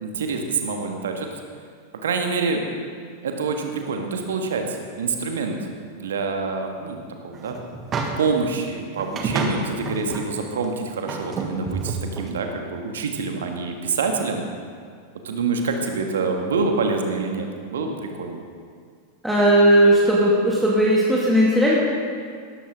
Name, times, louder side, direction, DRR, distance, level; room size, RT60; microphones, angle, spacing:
voice 1, 0.0-1.3 2.0-2.6 3.2-5.6 6.0-7.6 8.2-14.4 15.2-18.4, right 4 dB, 65° right, 4 dB, 1.6 m, -26 dB
sound 1, 7.3-8.5 9.0-10.3 10.6-10.7 11.1-12.3, right 4 dB, 25° right, 1.6 m, -29 dB
voice 2, 19.2-21.8, right 1 dB, ahead, -6 dB, 2.2 m, -17 dB
17.5 x 13.5 x 3.7 m, 2.1 s
figure-of-eight pair, 90°, 0 cm